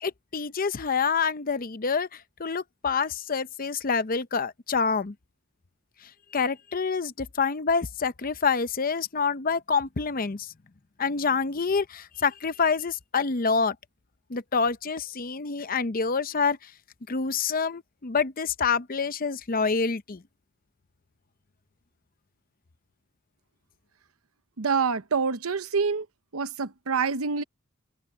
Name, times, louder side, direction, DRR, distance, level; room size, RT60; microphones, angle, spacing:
voice 1, 0.0-5.1 6.3-10.5 11.0-13.8 14.3-16.6 17.1-20.2, left 5 dB, 40° left, 0.7 m, -27 dB
voice 2, 24.6-26.1 26.3-27.4, right 5 dB, 75° right, 0.9 m, -26 dB
head